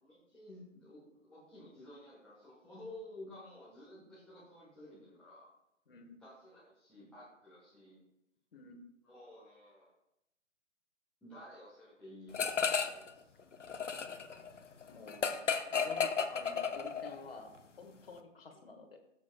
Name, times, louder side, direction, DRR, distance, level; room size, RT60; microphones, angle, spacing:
voice 1, 0.0-5.5 6.2-8.0 9.0-9.9 11.2-13.3, left 1 dB, ahead, -10 dB, 1.2 m, -53 dB
voice 2, 5.9-6.2 8.5-8.8 14.9-15.4 15.7-19.0, left 3 dB, 50° left, 5 dB, 1.6 m, -51 dB
sound 1, 12.3-13.1 13.4-17.2, left 6 dB, 70° left, 1.0 m, -33 dB
14.0 x 7.5 x 2.3 m, 0.83 s
figure-of-eight pair, 140°, 37 cm